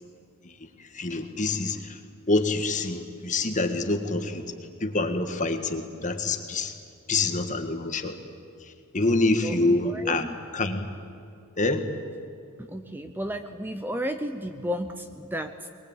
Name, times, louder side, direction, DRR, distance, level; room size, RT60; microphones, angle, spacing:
voice 1, 0.4-2.0 2.3-4.5 4.8-6.7 7.1-8.2 8.6-10.3 10.5-10.9 11.6-11.9, left 2 dB, 35° left, 6 dB, 1.7 m, -26 dB
voice 2, 9.4-10.4 12.6-15.7, equal, 10° right, 8 dB, 0.7 m, -33 dB
22.0 x 21.5 x 8.9 m, 2.6 s
head